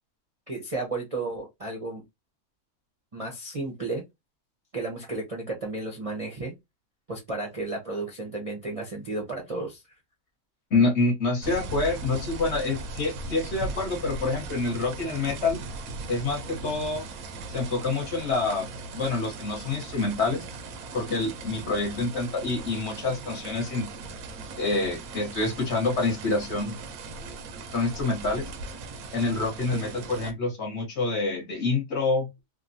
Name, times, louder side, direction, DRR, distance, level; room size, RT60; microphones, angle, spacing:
voice 1, 0.5-2.0 3.1-4.0 4.7-6.5 7.1-9.8 29.7-29.8, right 2 dB, 40° right, 0.5 m, -33 dB
voice 2, 10.7-15.6 16.1-17.1 17.5-18.7 18.9-20.4 20.9-23.9 24.6-26.8 27.7-28.5 29.1-32.3, left 3 dB, 55° left, 1.2 m, -27 dB
sound 1, 11.4-30.3, right 3 dB, 80° right, 1.0 m, -38 dB
3.1 x 2.1 x 2.5 m
omnidirectional pair, 1.5 m